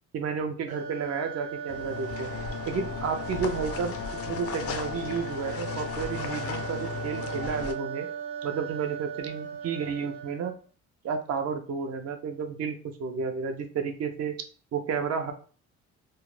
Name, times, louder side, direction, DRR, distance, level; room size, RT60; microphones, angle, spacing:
voice 1, 0.1-2.3 2.7-4.0 4.2-8.1 8.4-10.5 11.0-14.3 14.7-15.3, right 6 dB, 55° right, 6 dB, 0.6 m, -31 dB
sound 1, 0.7-10.6, right 6 dB, 90° right, 0.8 m, -38 dB
sound 2, 1.7-7.7, left 6 dB, 50° left, 0.4 m, -35 dB
2.4 x 2.1 x 3.1 m, 0.39 s
cardioid pair, 90°, 30 cm